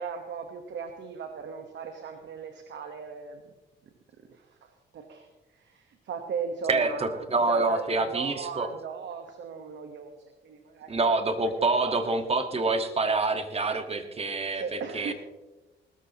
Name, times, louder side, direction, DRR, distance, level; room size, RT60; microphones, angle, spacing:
voice 1, 0.0-3.4 4.3-5.3 5.5-11.0 11.4-11.5 11.9-12.1 14.5-15.1, right 6 dB, 65° right, 6 dB, 1.4 m, -38 dB
voice 2, 6.7-8.7 10.9-15.1, right 3 dB, 30° right, 7 dB, 1.7 m, -26 dB
19.5 x 13.5 x 3.0 m, 1.1 s
cardioid pair, 90°, 20 cm